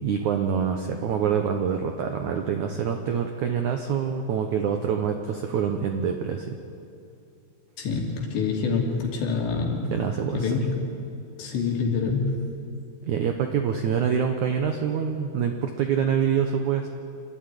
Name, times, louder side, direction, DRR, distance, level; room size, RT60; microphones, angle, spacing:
voice 1, 0.0-6.6 9.9-10.6 13.1-16.9, right 7 dB, 85° right, 5 dB, 1.6 m, -26 dB
voice 2, 7.8-9.9 10.3-10.8 11.4-12.4, left 4 dB, 85° left, 0 dB, 5.0 m, -26 dB
28.0 x 12.5 x 9.9 m, 2.6 s
omnidirectional pair, 5.0 m